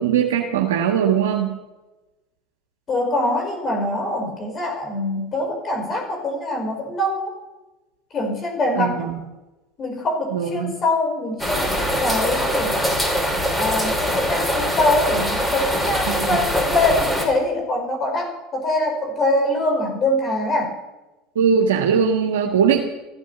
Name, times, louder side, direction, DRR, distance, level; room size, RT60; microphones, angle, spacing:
voice 1, 0.0-1.5 8.7-9.2 10.3-10.7 16.1-16.3 21.3-22.8, right 7 dB, 90° right, 0 dB, 1.6 m, -20 dB
voice 2, 2.9-7.3 8.1-9.1 9.8-12.8 13.5-20.7, left 1 dB, 40° left, 3 dB, 5.0 m, -23 dB
sound 1, 11.4-17.3, equal, 5° left, 5.2 m, -22 dB
15.0 x 12.5 x 7.0 m, 1.1 s
hypercardioid pair, 95°, 0 cm